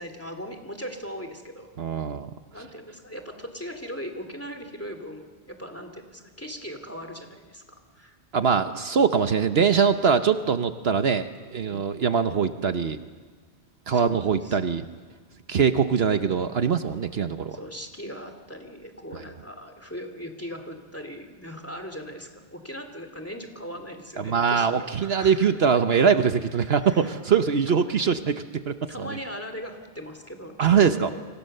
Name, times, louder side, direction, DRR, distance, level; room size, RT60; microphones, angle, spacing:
voice 1, 0.0-1.7 2.5-8.2 8.9-9.0 11.7-11.9 13.9-14.6 17.5-25.5 26.6-27.2 28.9-31.3, equal, 10° left, 6 dB, 2.7 m, -39 dB
voice 2, 1.8-2.3 8.3-13.0 13.9-14.8 15.5-17.6 24.2-29.1 30.6-31.1, right 6 dB, 65° right, 9 dB, 1.2 m, -22 dB
30.0 x 25.0 x 6.7 m, 1.4 s
omnidirectional pair, 1.1 m